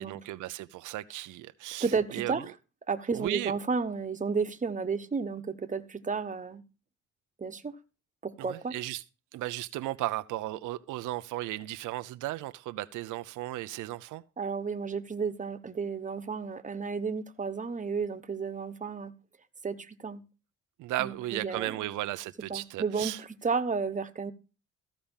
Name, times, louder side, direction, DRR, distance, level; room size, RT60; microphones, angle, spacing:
voice 1, 0.0-1.9 2.1-2.4 3.1-3.5 8.4-9.0 9.3-14.2 20.8-23.2, right 16 dB, 90° right, 0.6 m, -35 dB
voice 2, 1.8-2.5 2.9-6.6 7.4-7.8 8.2-8.7 14.4-19.1 19.6-20.2 21.0-21.9 22.5-24.3, right 5 dB, 25° right, 1.2 m, -32 dB
14.5 x 5.1 x 7.2 m
cardioid pair, 90°, 30 cm